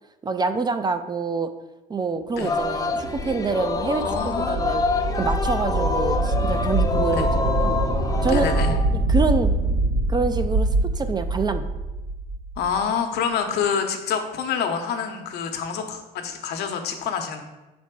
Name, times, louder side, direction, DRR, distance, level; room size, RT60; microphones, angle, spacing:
voice 1, 0.2-1.5 1.9-4.8 5.2-7.8 8.2-8.5 8.9-9.5 10.1-11.7, right 4 dB, 25° right, 9 dB, 0.5 m, -26 dB
Singing, 2.3-8.8, left 4 dB, 20° left, 0.6 m, -26 dB
sound 1, 2.6-12.7, right 2 dB, 65° right, 2.2 m, -25 dB
voice 2, 4.0-4.6 7.1-7.3 8.2-8.7 12.6-17.4, left 6 dB, 75° left, 4 dB, 1.0 m, -27 dB
5.5 x 4.3 x 6.1 m, 1.0 s
cardioid pair, 110°, 17 cm